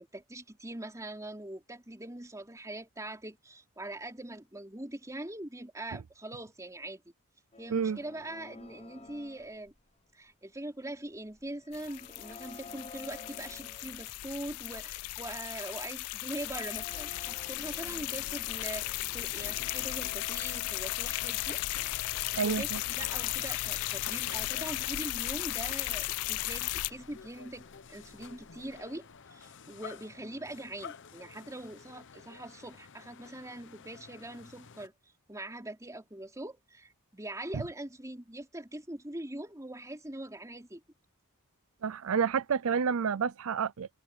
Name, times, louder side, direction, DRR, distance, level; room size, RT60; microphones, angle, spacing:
voice 1, 0.0-7.0 7.6-9.7 10.1-21.6 21.9-22.1 22.3-34.9 35.3-40.8, right 1 dB, 15° right, 4.0 m, -42 dB
sound 1, 7.5-10.4 11.1-14.2 16.3-20.3, left 3 dB, 30° left, 1.1 m, -52 dB
sound 2, 11.7-26.9, left 19 dB, 75° left, 0.3 m, -35 dB
sound 3, 16.9-34.9, left 7 dB, 55° left, 0.9 m, -49 dB
voice 2, 41.8-43.9, right 6 dB, 65° right, 0.5 m, -29 dB
head